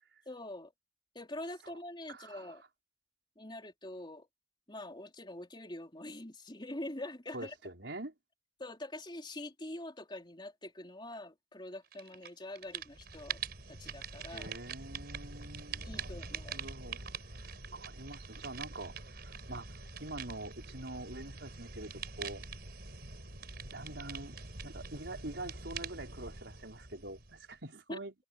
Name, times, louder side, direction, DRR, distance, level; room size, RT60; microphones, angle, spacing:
voice 1, 0.3-0.7 1.1-2.6 3.4-4.3 4.7-7.5 8.6-13.4 13.7-14.5 15.8-16.6 27.9-28.0, left 1 dB, 25° left, 3.9 m, -44 dB
voice 2, 2.1-2.6 7.3-8.1 14.3-16.1 16.5-17.0 17.7-19.7 20.0-22.4 23.7-24.4 24.6-28.1, right 2 dB, 75° right, 5.0 m, -45 dB
sound 1, 11.9-12.3 12.6-27.6, right 5 dB, 60° right, 5.2 m, -44 dB
head